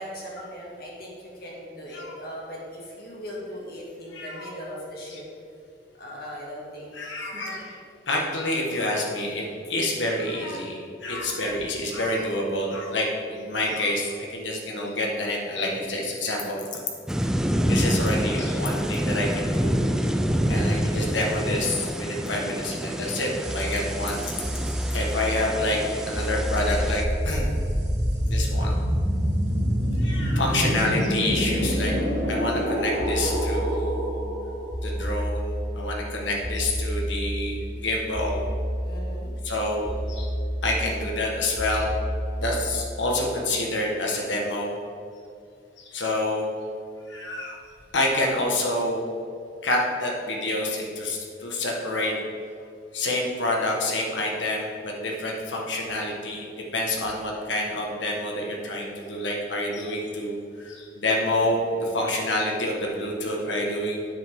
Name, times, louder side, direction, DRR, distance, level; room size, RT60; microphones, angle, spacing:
voice 1, 0.0-5.2 6.0-7.5 20.3-20.6 38.8-39.3, equal, 55° left, -4 dB, 2.2 m, -39 dB
voice 2, 4.1-4.5 6.9-7.8 8.1-16.6 17.6-19.7 20.5-24.3 24.9-25.8 26.0-27.5 28.2-28.8 30.0-32.0 32.3-34.1 34.8-38.4 39.4-40.3 40.6-41.9 42.4-44.7 45.8-46.5 47.1-47.6 47.9-49.0 49.6-52.1 52.9-56.5 56.7-64.1, left 1 dB, 85° left, -1 dB, 1.6 m, -28 dB
sound 1, 17.1-27.0, equal, 5° right, 0.3 m, -27 dB
sound 2, 23.4-43.0, equal, 65° right, 2.0 m, -28 dB
9.2 x 8.0 x 3.7 m, 2.4 s
head